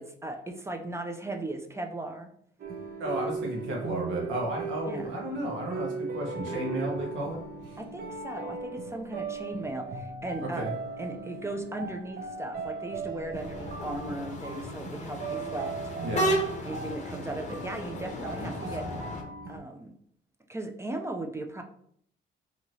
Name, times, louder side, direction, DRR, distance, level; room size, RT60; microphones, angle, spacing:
voice 1, 0.0-2.3 4.9-5.2 7.8-10.7 11.0-15.7 16.6-18.8 19.5-19.9 20.5-21.6, right 2 dB, 15° right, 4 dB, 0.4 m, -37 dB
sound 1, 2.6-19.6, right 4 dB, 50° right, 0.7 m, -38 dB
voice 2, 3.0-7.4 7.6-7.8 10.4-10.7 16.0-16.3 18.4-18.9, right 1 dB, 80° right, -1 dB, 1.1 m, -33 dB
sound 2, 13.3-19.2, equal, 35° left, 0.7 m, -34 dB
3.0 x 2.8 x 2.7 m, 0.64 s
cardioid pair, 90°, 20 cm